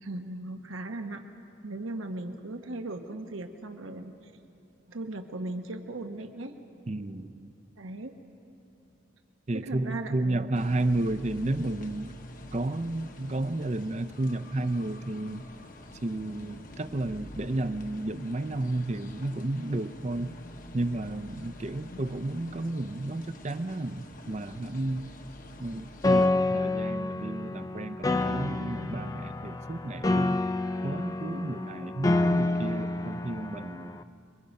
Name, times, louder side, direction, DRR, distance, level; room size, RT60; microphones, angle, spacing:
voice 1, 0.0-1.3 1.6-4.3 4.9-6.5 7.8-8.2 9.5-10.7, right 2 dB, 90° right, 6 dB, 1.1 m, -38 dB
voice 2, 6.9-7.5 9.5-12.1 12.5-15.4 16.0-20.3 20.7-25.1 25.6-30.4 30.8-34.0, right 2 dB, 35° right, 12 dB, 0.5 m, -32 dB
sound 1, 10.5-26.3, left 1 dB, 45° left, 1.0 m, -47 dB
Piano, 26.0-34.0, left 2 dB, 20° left, 0.4 m, -28 dB
25.0 x 23.5 x 5.3 m, 2.8 s
head